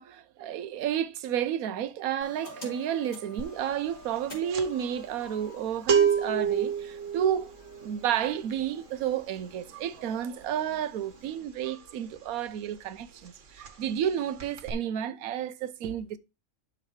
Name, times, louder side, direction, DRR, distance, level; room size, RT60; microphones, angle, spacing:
voice 1, 0.0-7.5 7.8-16.2, right 9 dB, 85° right, 1.1 m, -31 dB
sound 1, 2.2-11.4, left 1 dB, 35° left, 3.1 m, -50 dB
sound 2, 3.4-3.7 3.9-12.5 12.8-13.0 13.2-14.1 14.4-14.7, right 7 dB, 60° right, 1.4 m, -30 dB
12.0 x 3.9 x 3.1 m
omnidirectional pair, 1.5 m